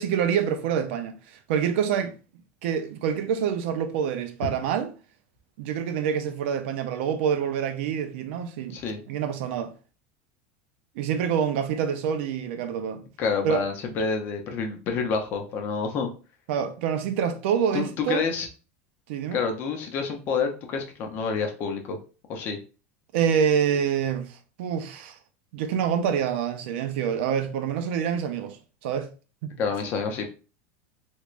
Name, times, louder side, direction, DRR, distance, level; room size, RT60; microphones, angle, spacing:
voice 1, 0.0-2.1 2.6-4.9 5.6-8.8 9.1-9.7 11.0-13.0 13.4-13.6 16.5-18.2 19.1-19.4 23.1-25.2 25.5-28.6 28.8-29.1 29.4-29.5, right 8 dB, 60° right, 0.5 m, -26 dB
voice 2, 8.7-9.0 13.2-16.1 17.7-18.5 19.3-22.0 22.3-22.6 29.6-30.2, left 5 dB, 30° left, 0.6 m, -28 dB
3.4 x 3.1 x 2.5 m
supercardioid pair, 175°, 7 cm